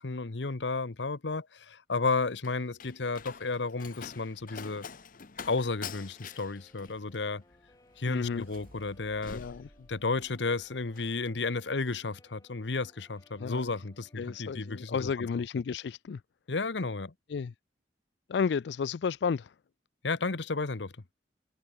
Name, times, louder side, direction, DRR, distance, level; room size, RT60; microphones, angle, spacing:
voice 1, 0.0-4.9 5.4-7.4 8.0-9.4 9.9-15.3 16.5-17.1 20.0-20.9, left 3 dB, 90° left, 1.0 m, -32 dB
Slam, 1.9-10.4 10.7-11.2, left 6 dB, 50° left, 1.0 m, -47 dB
Guitar, 5.8-14.5, left 1 dB, 20° left, 4.0 m, -63 dB
sound 1, 7.5-11.3, right 1 dB, 55° right, 4.9 m, -60 dB
voice 2, 8.1-8.5 9.3-9.7 13.4-13.7 14.2-16.2 17.3-17.5 18.3-19.5, left 6 dB, 70° left, 0.4 m, -32 dB
head